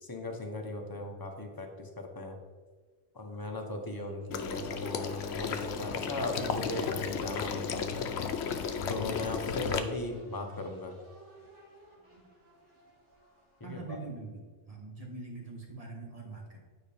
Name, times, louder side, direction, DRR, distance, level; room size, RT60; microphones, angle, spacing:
voice 1, 0.0-2.4 3.1-8.1 8.9-11.0 13.6-14.0, left 2 dB, 20° left, 3 dB, 0.7 m, -38 dB
Water / Liquid, 4.3-9.8, left 6 dB, 65° left, 0.8 m, -34 dB
sound 1, 4.6-14.1, right 1 dB, 75° right, 2.2 m, -54 dB
voice 2, 13.6-16.6, right 3 dB, 30° right, 0 dB, 1.3 m, -43 dB
9.1 x 5.1 x 3.4 m, 1.5 s
omnidirectional pair, 1.3 m